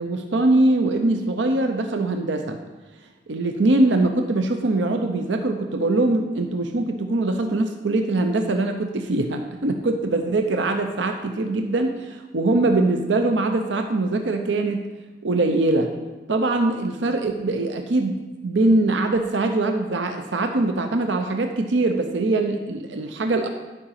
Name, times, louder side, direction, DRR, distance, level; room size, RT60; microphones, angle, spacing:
voice 1, 0.0-2.6 3.3-14.8 15.2-15.9 16.3-18.2 18.4-23.5, right 2 dB, 75° right, 5 dB, 0.7 m, -22 dB
11.5 x 5.0 x 5.7 m, 1.2 s
head